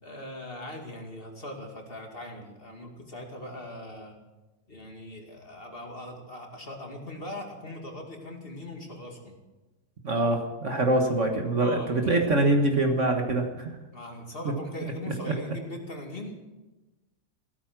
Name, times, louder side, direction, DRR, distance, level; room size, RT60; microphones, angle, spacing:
voice 1, 0.0-4.2 4.7-9.4 11.6-12.2 13.9-16.4, left 1 dB, 35° left, 1 dB, 2.5 m, -40 dB
voice 2, 10.0-13.7, right 2 dB, 45° right, 3 dB, 1.8 m, -24 dB
15.5 x 13.5 x 6.1 m, 1.1 s
omnidirectional pair, 1.8 m